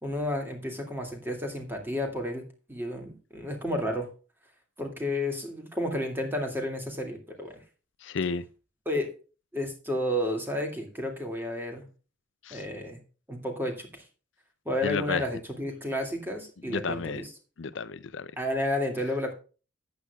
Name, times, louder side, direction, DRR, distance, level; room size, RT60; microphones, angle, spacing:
voice 1, 0.0-4.1 4.8-7.6 8.9-9.1 9.5-11.9 12.5-13.0 13.3-14.0 14.7-17.3 18.4-19.3, left 1 dB, 10° right, 2.3 m, -31 dB
voice 2, 8.0-8.4 12.4-12.6 14.8-15.2 16.7-17.2 17.6-18.3, left 5 dB, 70° left, 0.5 m, -32 dB
14.0 x 9.8 x 2.4 m
head